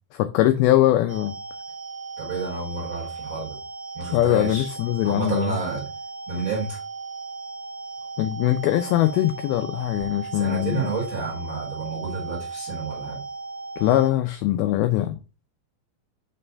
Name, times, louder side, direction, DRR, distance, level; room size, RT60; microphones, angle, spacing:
voice 1, 0.1-1.3 4.1-5.6 8.2-10.9 13.8-15.2, left 14 dB, 85° left, 2.1 m, -22 dB
sound 1, 1.1-14.1, right 4 dB, 90° right, 1.5 m, -36 dB
voice 2, 2.2-3.5 4.0-4.7 5.0-5.9 6.3-6.8 10.3-13.2, right 4 dB, 40° right, 2.1 m, -30 dB
5.9 x 3.4 x 5.3 m
omnidirectional pair, 4.9 m